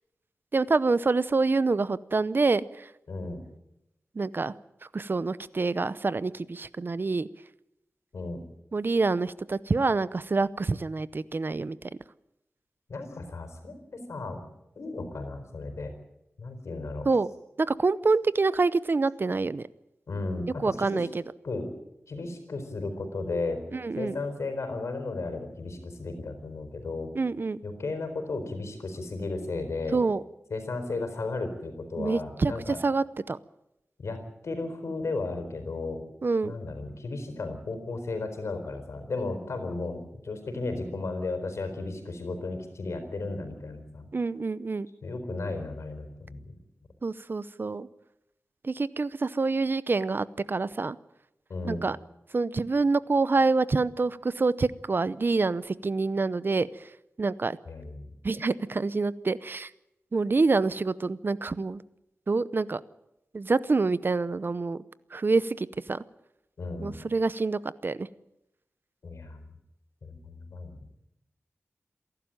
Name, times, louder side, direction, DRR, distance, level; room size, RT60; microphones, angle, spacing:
voice 1, 0.5-2.9 4.1-4.5 4.9-7.3 8.7-11.8 17.1-17.3 17.6-19.7 20.6-21.1 23.7-24.1 27.1-27.6 29.9-30.2 32.0-33.4 36.2-36.5 44.1-44.9 47.0-47.9 48.6-51.0 51.6-52.0 52.3-56.9 57.2-57.6 58.2-59.7 60.1-61.8 62.3-62.8 63.3-64.8 65.1-66.0 66.8-68.1, right 3 dB, 50° right, 17 dB, 0.7 m, -26 dB
voice 2, 3.1-3.4 8.1-8.4 12.9-14.4 14.8-15.9 16.4-17.1 20.1-21.1 21.4-21.7 22.1-23.6 24.0-27.1 27.6-30.0 30.5-32.8 34.0-36.0 36.4-44.1 45.0-46.4 51.5-51.9 57.7-58.1 66.6-67.0 69.0-69.4 70.0-70.8, left 3 dB, 90° left, 7 dB, 4.3 m, -34 dB
27.5 x 12.0 x 9.0 m, 0.87 s
wide cardioid pair, 90°, 5 cm